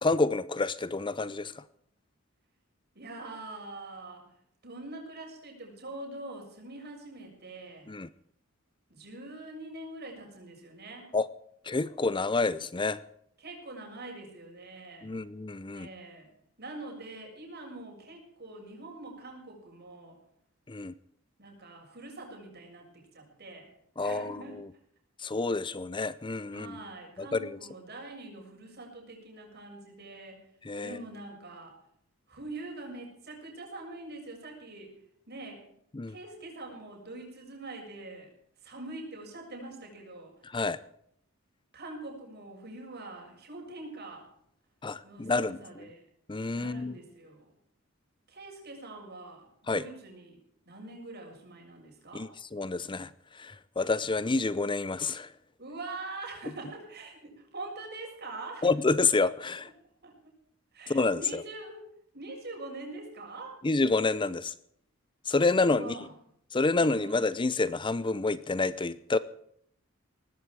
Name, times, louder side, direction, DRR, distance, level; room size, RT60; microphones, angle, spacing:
voice 1, 0.0-1.6 7.9-8.1 11.1-11.3 11.6-13.0 15.0-15.9 20.7-20.9 24.0-24.7 25.2-26.8 27.2-27.6 30.6-31.0 35.9-36.2 40.4-40.8 44.8-45.9 46.3-46.9 49.7-49.8 52.1-55.3 58.6-59.7 60.9-61.4 63.6-64.5 65.3-66.0 66.5-69.2, left 3 dB, 25° left, 17 dB, 0.6 m, -28 dB
voice 2, 3.0-4.3 4.6-7.9 8.9-11.1 13.4-15.1 15.7-16.3 16.6-20.2 21.4-23.7 24.0-24.6 26.5-30.4 30.8-31.8 32.3-34.9 35.3-35.6 36.1-38.3 38.6-40.3 41.7-44.3 45.0-46.1 46.5-47.5 48.3-52.3 55.6-58.7 60.0-60.1 60.7-61.9 62.1-63.6 65.6-66.1 66.8-67.3, right 2 dB, 50° right, 1 dB, 7.0 m, -44 dB
19.5 x 15.0 x 4.8 m, 0.68 s
head